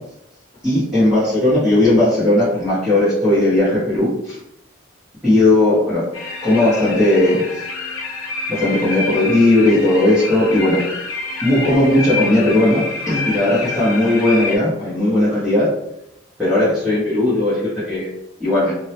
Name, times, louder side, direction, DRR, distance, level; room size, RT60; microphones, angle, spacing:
voice 1, 0.6-4.4 5.2-6.1 6.4-7.6 8.5-10.8 11.4-15.7 16.4-18.1 18.4-18.7, left 1 dB, 5° right, -14 dB, 0.8 m, -16 dB
sound 1, 6.1-14.6, left 3 dB, 90° left, 0.5 m, -28 dB
2.2 x 2.0 x 2.7 m, 0.85 s
head